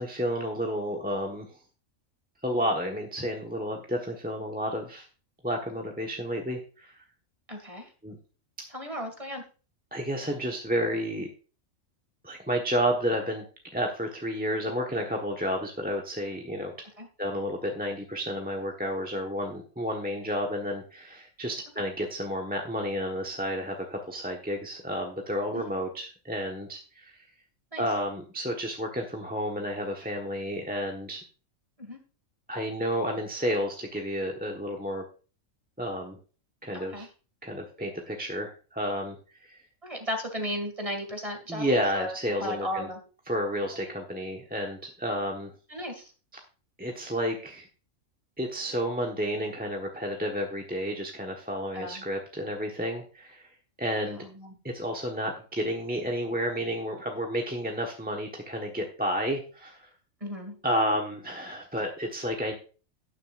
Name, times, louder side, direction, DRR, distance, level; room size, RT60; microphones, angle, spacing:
voice 1, 0.0-1.6 2.4-5.1 5.4-7.0 8.0-8.2 8.6-8.7 9.9-11.3 12.2-13.4 13.7-16.7 17.2-27.3 27.8-31.2 32.5-35.0 35.8-36.2 36.6-37.1 37.4-39.6 41.5-42.9 43.3-45.5 46.8-47.7 48.4-53.5 53.8-54.2 54.7-59.9 60.6-62.6, equal, 5° right, 0 dB, 1.1 m, -31 dB
voice 2, 7.5-7.9 8.7-9.4 17.0-17.1 25.5-25.7 27.7-27.8 31.8-32.0 36.7-37.1 39.8-42.1 42.4-43.0 45.7-46.1 51.7-52.0 54.0-54.6 60.2-60.6, equal, 25° right, 4 dB, 2.2 m, -35 dB
18.0 x 6.6 x 2.5 m, 0.36 s
omnidirectional pair, 1.4 m